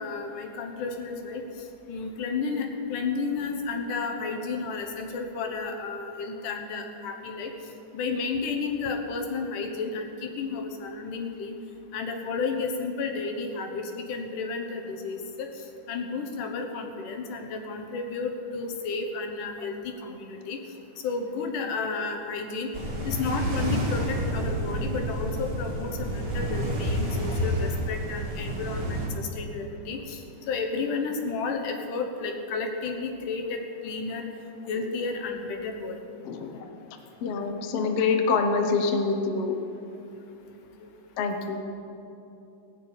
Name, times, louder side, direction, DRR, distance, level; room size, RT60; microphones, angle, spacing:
voice 1, 0.0-1.4 1.9-7.5 7.9-11.6 11.9-20.6 21.0-22.7 23.0-34.3 34.7-36.0 36.5-36.6 40.5-40.9, left 4 dB, 80° left, 4 dB, 2.8 m, -32 dB
sound 1, 22.7-29.1, equal, 10° right, 3.5 m, -29 dB
voice 2, 36.3-36.6 37.2-39.5 41.2-41.6, left 4 dB, 60° left, 5 dB, 1.7 m, -25 dB
19.0 x 6.8 x 8.8 m, 2.9 s
omnidirectional pair, 3.6 m